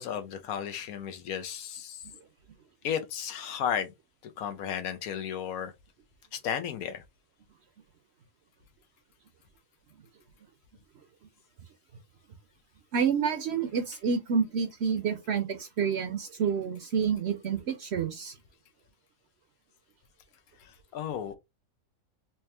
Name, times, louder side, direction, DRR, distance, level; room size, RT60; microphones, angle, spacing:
voice 1, 0.0-2.0 2.8-3.9 4.2-5.7 6.3-7.0 20.6-21.4, left 8 dB, 90° left, 1.2 m, -34 dB
voice 2, 12.9-18.4, right 6 dB, 60° right, 0.8 m, -28 dB
3.4 x 2.9 x 3.2 m
omnidirectional pair, 1.5 m